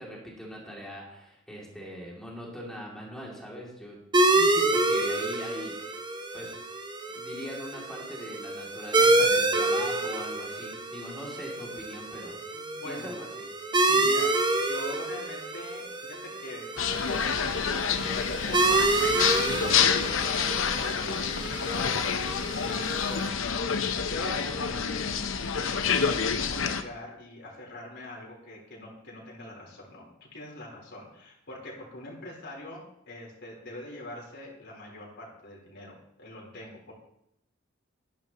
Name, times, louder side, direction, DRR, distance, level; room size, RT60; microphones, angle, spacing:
voice 1, 0.0-4.0 4.3-5.9 6.3-6.5 7.1-12.4 12.8-13.5 24.5-24.8, equal, 5° left, -4 dB, 2.6 m, -41 dB
sound 1, 4.1-23.3, right 2 dB, 25° right, 0.9 m, -28 dB
voice 2, 12.5-13.1 13.8-16.8 17.2-36.9, left 1 dB, 60° left, -3 dB, 4.0 m, -43 dB
sound 2, 16.8-26.8, left 6 dB, 75° left, 0.8 m, -28 dB
13.0 x 10.5 x 3.0 m, 0.80 s
head